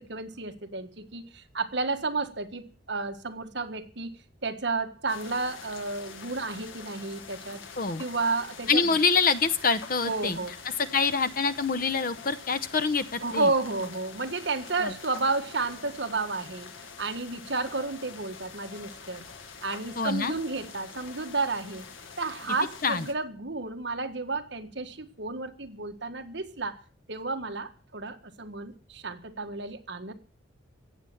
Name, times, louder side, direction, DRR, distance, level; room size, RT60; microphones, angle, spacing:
voice 1, 0.0-7.6 8.0-9.0 10.0-10.5 13.2-16.7 17.0-19.3 19.6-21.8 22.2-26.8 27.1-30.1, right 3 dB, 60° right, 6 dB, 1.6 m, -32 dB
sound 1, 5.1-23.1, left 5 dB, 75° left, 1.7 m, -45 dB
voice 2, 8.7-10.4 10.8-13.5 14.8-14.9 20.0-20.3 22.8-23.1, left 4 dB, 45° left, 14 dB, 0.8 m, -26 dB
16.5 x 8.1 x 7.7 m, 0.39 s
head